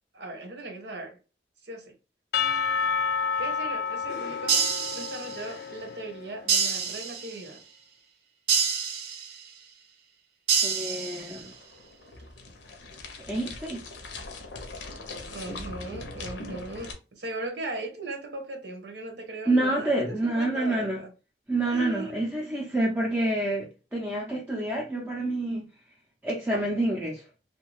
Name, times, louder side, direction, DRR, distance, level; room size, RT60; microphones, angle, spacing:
voice 1, 0.1-1.2 1.6-1.9 3.4-4.6 4.9-7.6 15.3-21.1 21.7-22.3 26.5-26.6, right 2 dB, 80° right, 1.0 m, -38 dB
Percussion / Church bell, 2.3-6.5, left 6 dB, 60° left, 0.3 m, -30 dB
sound 1, 4.5-5.5 6.5-7.5 8.5-9.5 10.5-11.5, right 6 dB, 60° right, 0.6 m, -27 dB
voice 2, 10.6-11.5 13.3-13.8 19.5-21.0 21.5-25.7 26.2-27.2, right 1 dB, 10° right, 0.5 m, -28 dB
sound 2, 11.0-16.9, left 2 dB, 90° left, 0.7 m, -41 dB
2.7 x 2.2 x 3.0 m
head